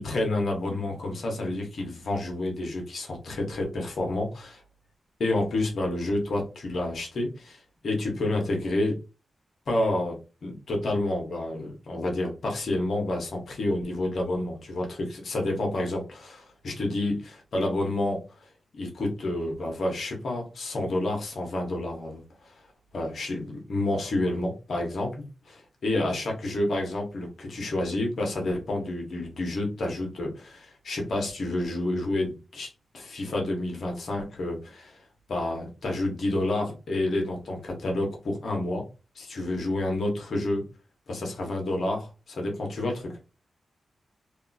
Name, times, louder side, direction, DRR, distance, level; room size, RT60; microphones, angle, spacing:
voice 1, 0.0-4.6 5.2-9.0 9.7-22.5 22.9-32.7 32.9-35.0 35.3-38.9 39.1-40.6 41.1-43.2, left 1 dB, 70° left, 1 dB, 1.0 m, -29 dB
2.7 x 2.3 x 2.6 m, 0.31 s
cardioid pair, 60°, 0 cm